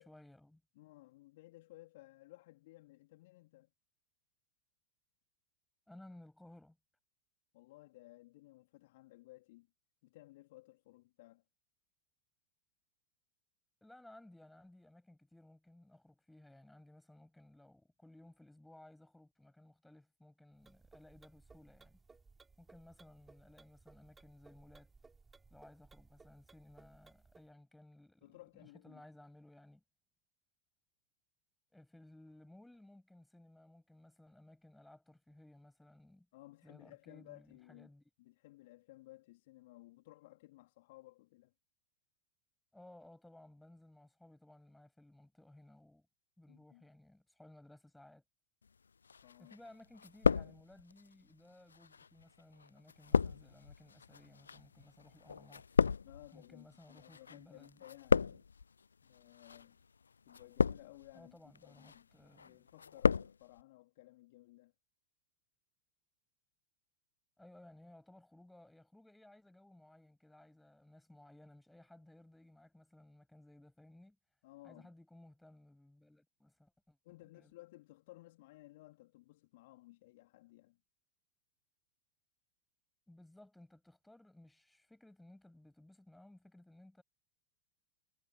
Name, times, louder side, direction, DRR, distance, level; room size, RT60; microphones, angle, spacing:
voice 1, 0.0-0.6 5.9-6.8 13.8-22.0 22.6-24.9 25.5-29.8 31.7-36.3 36.6-38.0 42.7-46.1 46.4-48.2 49.4-55.7 56.3-57.8 58.2-58.4 61.1-62.6 67.4-74.2 74.6-77.5 83.1-87.0, left 1 dB, 5° left, 7.7 m, -59 dB
voice 2, 0.7-3.7 7.5-9.7 10.0-11.4 28.2-29.0 36.3-37.9 38.2-41.5 46.5-46.8 49.2-49.5 56.0-58.3 59.0-59.8 60.2-61.4 61.6-62.1 62.4-64.7 74.4-74.9 77.0-80.8, left 19 dB, 55° left, 3.3 m, -58 dB
sound 1, 20.6-27.5, right 4 dB, 15° right, 4.0 m, -63 dB
sound 2, 49.1-49.7 50.0-51.0 51.7-57.4 57.6-58.6 59.3-59.6 60.3-61.1 61.6-62.0 62.4-63.3 63.6-63.7, left 5 dB, 75° left, 0.4 m, -33 dB
figure-of-eight pair, 90°, 0 cm